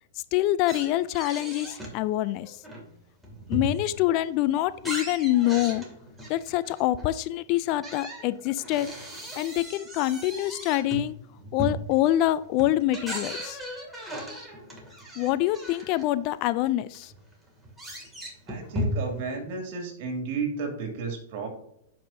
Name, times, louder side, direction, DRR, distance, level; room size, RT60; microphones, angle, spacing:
voice 1, 0.3-2.6 3.5-5.8 6.3-8.9 9.4-11.1 11.5-13.6 15.2-17.1, left 14 dB, 45° left, 16 dB, 0.4 m, -25 dB
sound 1, 0.7-2.0 2.4-4.1 4.5-7.1 7.7-16.0 16.7-16.8 16.9-19.3, equal, 5° right, 2.4 m, -37 dB
voice 2, 18.5-21.5, right 4 dB, 55° right, 3 dB, 2.5 m, -32 dB
10.5 x 5.4 x 2.7 m, 0.76 s
hypercardioid pair, 120°, 0 cm